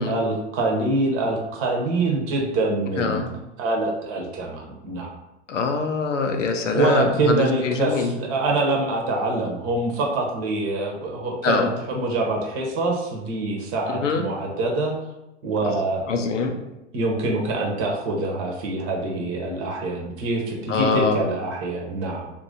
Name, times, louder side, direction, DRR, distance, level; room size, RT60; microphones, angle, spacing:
voice 1, 0.0-3.2 3.6-5.1 6.7-14.9 15.4-16.1 16.4-16.5 16.9-22.3, right 2 dB, 35° right, 0 dB, 0.9 m, -25 dB
voice 2, 3.0-3.3 5.5-8.1 11.4-11.7 13.9-14.2 16.1-16.5 20.7-21.2, left 4 dB, 85° left, 4 dB, 0.6 m, -23 dB
2.9 x 2.6 x 3.7 m, 0.92 s
hypercardioid pair, 105°, 36 cm